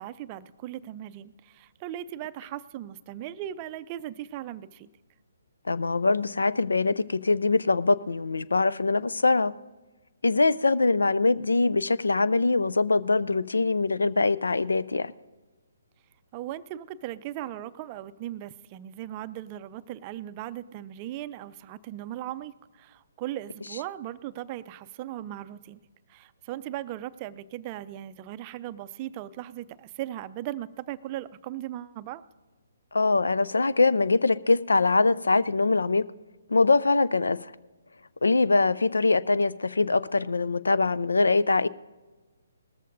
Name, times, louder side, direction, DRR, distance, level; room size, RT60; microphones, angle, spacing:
voice 1, 0.0-4.9 16.3-25.8 26.1-32.2, right 13 dB, 30° right, 14 dB, 0.4 m, -38 dB
voice 2, 5.7-9.5 10.2-15.1 32.9-36.0 36.5-37.4 38.2-41.7, left 3 dB, 80° left, 17 dB, 0.4 m, -23 dB
19.0 x 14.0 x 2.6 m, 1.2 s
figure-of-eight pair, 135°, 0 cm